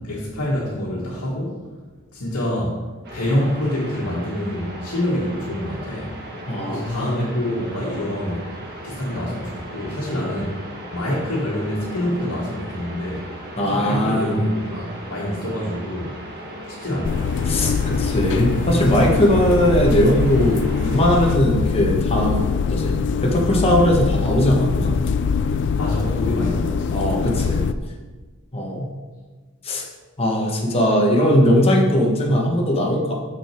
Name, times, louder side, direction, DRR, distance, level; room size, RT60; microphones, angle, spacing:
voice 1, 0.0-1.6 2.1-2.7 3.1-6.1 6.6-8.4 8.8-10.6 10.9-13.3 13.6-16.2 16.7-17.5 25.8-27.0, left 1 dB, 75° left, -6 dB, 1.6 m, -26 dB
sound 1, 3.0-21.3, right 1 dB, 45° right, 1.4 m, -37 dB
voice 2, 6.5-7.2 13.6-14.4 17.4-22.4 22.7-25.0 26.9-27.6 28.5-28.9 29.6-29.8 30.2-33.1, equal, 25° left, -2 dB, 1.2 m, -19 dB
sound 2, 17.0-27.7, left 5 dB, 55° left, 0.3 m, -23 dB
6.9 x 6.4 x 4.4 m, 1.3 s
head